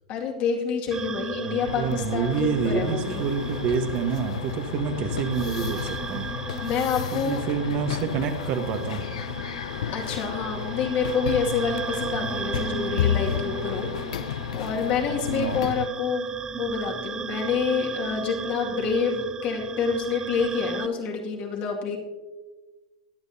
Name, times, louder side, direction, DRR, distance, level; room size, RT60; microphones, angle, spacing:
voice 1, 0.1-3.2 6.6-7.4 9.9-13.9 14.1-16.3 16.6-22.0, left 6 dB, 45° left, 0 dB, 2.2 m, -27 dB
sound 1, 0.9-20.9, right 6 dB, 20° right, 0.4 m, -36 dB
voice 2, 1.4-6.2 7.1-9.0 15.3-15.7, right 6 dB, 45° right, 6 dB, 1.3 m, -27 dB
sound 2, 1.6-15.9, left 10 dB, 70° left, 0.4 m, -32 dB
21.0 x 8.1 x 2.8 m, 1.2 s
hypercardioid pair, 105°, 4 cm